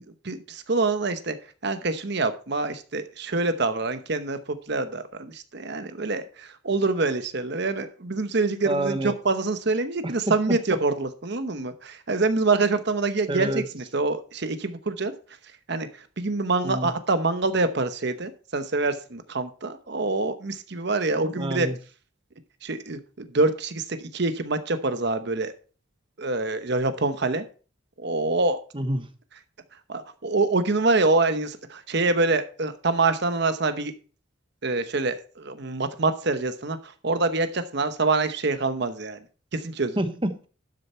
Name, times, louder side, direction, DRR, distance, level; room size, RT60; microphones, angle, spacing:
voice 1, 0.2-1.4 1.6-15.1 15.7-21.7 22.6-25.5 26.2-27.4 28.0-28.6 29.9-33.9 34.6-39.2 39.5-40.0, right 3 dB, 55° right, 10 dB, 0.9 m, -26 dB
voice 2, 8.6-9.1 13.3-13.6 16.6-16.9 21.3-21.7 28.7-29.1 40.0-40.5, right 1 dB, 25° right, 9 dB, 1.0 m, -27 dB
12.0 x 6.7 x 4.4 m, 0.38 s
head